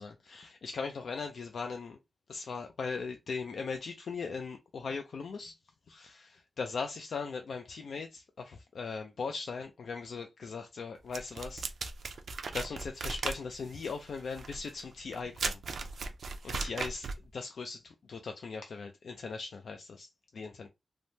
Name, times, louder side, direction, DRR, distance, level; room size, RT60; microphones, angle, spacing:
voice 1, 0.0-2.0 2.3-5.5 5.9-11.7 12.5-15.6 16.4-17.1 17.3-20.7, left 4 dB, 85° left, 0.4 m, -39 dB
sound 1, 11.1-17.3, right 4 dB, 75° right, 0.4 m, -37 dB
3.3 x 2.1 x 2.7 m
wide cardioid pair, 155°, 0 cm